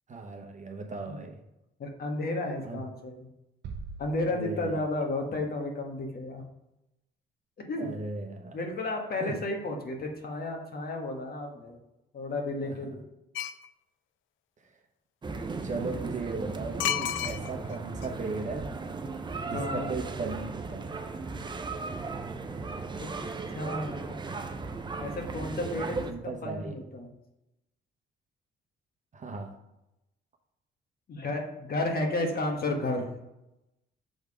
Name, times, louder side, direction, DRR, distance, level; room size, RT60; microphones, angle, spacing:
voice 1, 0.1-1.4 2.6-2.8 4.2-4.8 7.8-8.6 9.2-9.3 12.6-12.7 15.6-18.7 19.4-20.8 26.1-26.7 29.1-29.5, right 3 dB, 40° right, 3 dB, 1.0 m, -37 dB
voice 2, 1.8-3.3 4.0-6.4 7.7-7.9 8.5-11.8 12.1-13.0 15.7-15.8 19.4-19.9 23.0-23.1 23.5-24.2 25.0-27.1 31.1-33.1, left 2 dB, 50° left, 2 dB, 1.4 m, -32 dB
sound 1, 3.6-5.2, right 4 dB, 60° right, 0.7 m, -43 dB
sound 2, 13.3-13.7 16.8-17.7 18.0-18.1, left 11 dB, 80° left, 0.4 m, -30 dB
sound 3, 15.2-26.1, right 3 dB, 25° right, 0.6 m, -36 dB
6.4 x 3.5 x 4.8 m, 0.91 s
cardioid pair, 90°, 20 cm